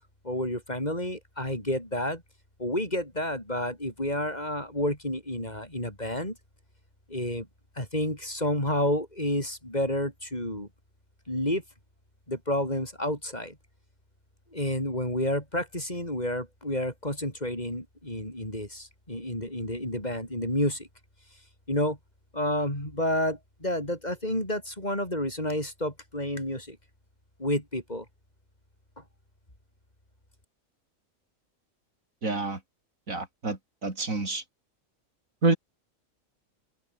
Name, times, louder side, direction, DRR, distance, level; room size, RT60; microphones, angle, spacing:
voice 1, 0.3-2.2 2.6-6.3 7.1-7.4 7.8-10.7 11.3-11.6 12.3-13.5 14.5-20.8 21.7-22.0 22.3-26.8 27.4-28.0, left 1 dB, 30° left, 7.2 m, -30 dB
voice 2, 32.2-32.6 33.1-34.4 35.4-35.6, right 3 dB, 80° right, 4.5 m, -28 dB
omnidirectional pair, 1.4 m